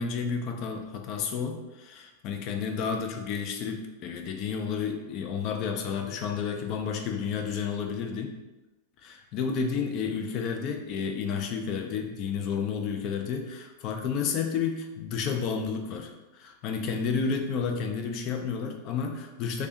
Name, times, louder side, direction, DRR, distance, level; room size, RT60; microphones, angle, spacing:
voice 1, 0.0-8.4 9.0-19.7, left 6 dB, 40° left, 3 dB, 0.4 m, -31 dB
3.2 x 2.5 x 2.9 m, 1.1 s
figure-of-eight pair, 90°, 0 cm